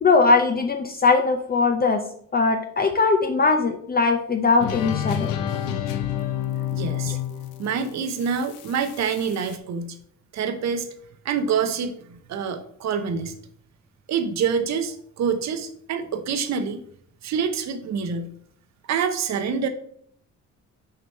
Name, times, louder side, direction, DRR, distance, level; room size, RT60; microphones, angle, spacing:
voice 1, 0.0-2.0 2.3-5.3 7.1-7.2, left 4 dB, 30° left, 4 dB, 0.6 m, -20 dB
sound 1, 4.6-9.6, left 10 dB, 90° left, 0.8 m, -29 dB
voice 2, 6.7-7.2 7.6-10.0 10.3-10.9 11.2-13.4 14.1-16.8 17.2-18.3 18.9-19.7, right 6 dB, 60° right, 8 dB, 0.8 m, -26 dB
6.6 x 2.9 x 5.4 m, 0.63 s
cardioid pair, 90°, 30 cm